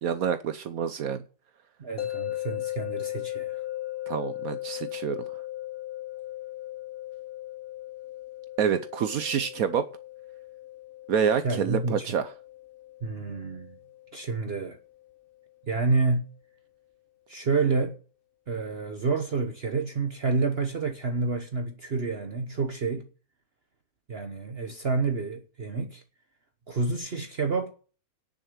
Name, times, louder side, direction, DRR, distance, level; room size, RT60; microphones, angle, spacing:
voice 1, 0.0-1.2 4.1-5.2 8.6-9.9 11.1-12.3, right 7 dB, 70° right, 1.2 m, -27 dB
voice 2, 1.8-3.6 11.4-12.1 13.0-13.8 14.1-14.8 15.7-16.3 17.3-17.9 18.5-23.1 24.1-26.0 26.7-27.7, right 4 dB, 45° right, 1.2 m, -29 dB
sound 1, 2.0-15.0, left 15 dB, 40° left, 1.3 m, -38 dB
10.5 x 6.5 x 8.7 m
omnidirectional pair, 1.6 m